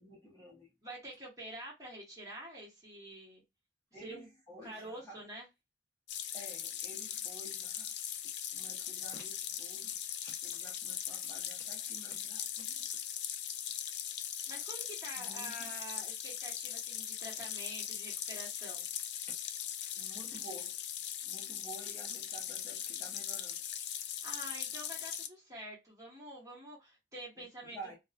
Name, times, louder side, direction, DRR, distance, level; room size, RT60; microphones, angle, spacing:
voice 1, 0.0-0.7 3.9-5.2 6.3-7.9 8.5-10.0 10.2-12.8 15.2-15.7 19.9-20.8 21.2-23.6 27.6-28.0, right 1 dB, 15° left, 0.8 m, -52 dB
voice 2, 0.8-3.4 4.0-4.3 4.6-5.5 14.5-18.9 24.2-27.8, right 1 dB, 20° right, 1.2 m, -47 dB
sound 1, 6.1-25.3, left 10 dB, 70° left, 0.4 m, -40 dB
2.7 x 2.3 x 2.4 m
head